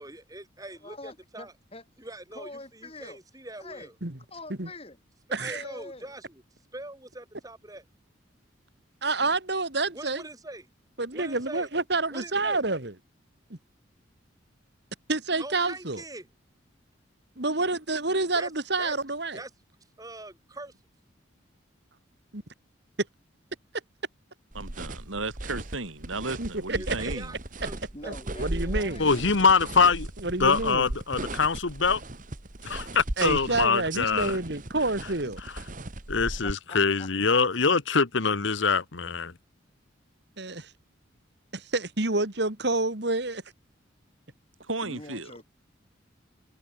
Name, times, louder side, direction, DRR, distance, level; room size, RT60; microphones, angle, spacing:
voice 1, 0.0-1.5 2.0-3.9 5.3-6.3 6.7-7.8 9.9-10.7 11.1-11.7 12.1-12.6 15.4-16.3 18.3-18.5 18.8-19.0 19.3-19.5 20.0-20.7 26.7-27.4 27.6-28.7, right 2 dB, 20° right, 3.1 m, -42 dB
voice 2, 0.8-1.8 2.3-3.2 3.6-3.9 4.3-5.0 5.5-6.1 27.9-29.5 36.2-37.4 44.8-45.4, left 2 dB, 30° left, 7.7 m, -44 dB
voice 3, 5.3-5.6 9.0-10.2 11.0-12.9 13.5-13.6 15.1-16.0 17.4-19.4 22.3-22.4 26.4-26.9 28.4-29.1 30.2-30.9 33.2-35.4 40.4-40.7 41.5-43.4, right 2 dB, 55° right, 2.5 m, -28 dB
sound 1, 24.5-36.5, right 1 dB, 40° right, 1.7 m, -37 dB
voice 4, 24.6-27.3 44.6-45.3, right 3 dB, 90° right, 5.3 m, -35 dB
voice 5, 29.0-30.1 30.4-32.0 32.6-34.3 36.1-39.3, left 5 dB, 70° left, 1.2 m, -24 dB
head